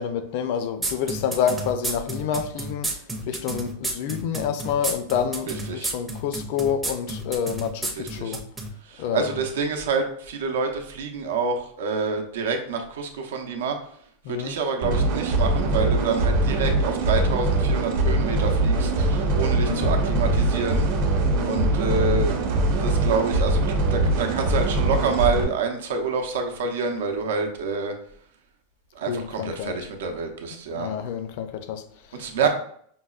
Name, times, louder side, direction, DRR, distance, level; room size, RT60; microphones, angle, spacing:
voice 1, 0.0-8.4 9.0-9.5 14.2-14.6 19.5-19.9 21.2-21.6 29.1-29.8 30.7-32.5, left 8 dB, 55° left, 0.4 m, -28 dB
sound 1, 0.8-8.7, right 2 dB, 10° right, 0.5 m, -30 dB
voice 2, 5.5-5.9 8.0-8.4 8.8-13.8 14.3-20.9 21.5-22.4 22.8-27.9 28.9-30.9 32.1-32.5, right 4 dB, 90° right, 0.6 m, -27 dB
sound 2, 14.8-25.4, right 2 dB, 60° right, 0.8 m, -22 dB
5.3 x 2.1 x 2.3 m
supercardioid pair, 160°, 0 cm